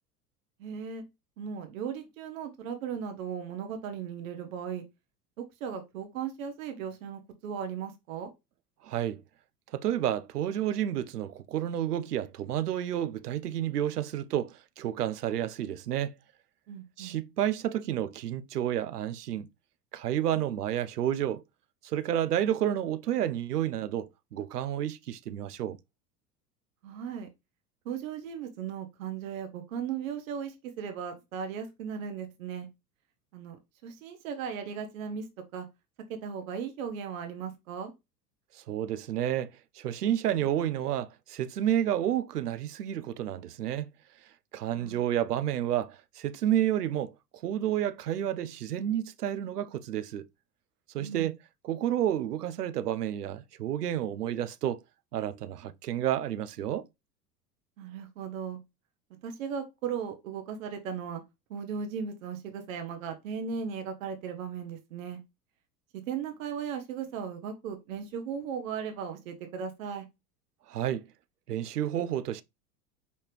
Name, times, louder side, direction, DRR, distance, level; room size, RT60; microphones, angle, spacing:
voice 1, 0.6-1.0 1.4-4.8 5.4-8.3 16.7-17.1 26.8-27.3 27.8-32.7 33.3-35.3 35.5-35.7 36.1-37.9 44.6-45.0 51.0-51.3 57.8-58.6 59.2-61.2 61.5-65.2 65.9-70.0, right 7 dB, 60° right, 0.9 m, -37 dB
voice 2, 8.8-9.2 9.7-16.1 17.0-19.5 19.9-21.4 21.8-25.8 38.5-43.9 44.5-47.1 47.4-50.3 50.9-51.3 51.6-54.8 55.1-56.9 70.7-71.1 71.5-72.4, right 11 dB, 80° right, 0.5 m, -30 dB
5.0 x 2.7 x 3.2 m
figure-of-eight pair, 80°, 47 cm